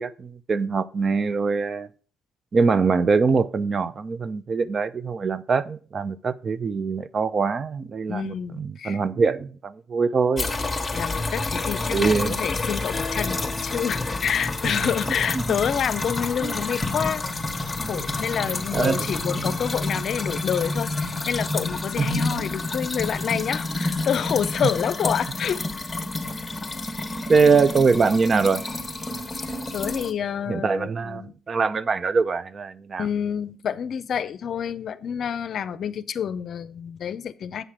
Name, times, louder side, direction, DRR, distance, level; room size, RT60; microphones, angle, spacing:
voice 1, 0.0-1.9 2.5-10.5 11.9-12.4 16.4-16.5 17.9-18.1 18.7-19.1 22.0-22.3 27.3-28.6 30.5-33.0, right 4 dB, 40° right, 0.5 m, -23 dB
voice 2, 8.1-9.0 10.9-17.2 17.9-25.6 29.3-31.4 33.0-37.6, left 8 dB, 60° left, 0.5 m, -28 dB
sound 1, 10.4-30.1, left 2 dB, 15° left, 1.2 m, -29 dB
sound 2, 12.9-16.1, left 3 dB, 35° left, 1.0 m, -40 dB
8.1 x 5.8 x 4.9 m
cardioid pair, 95°, 0 cm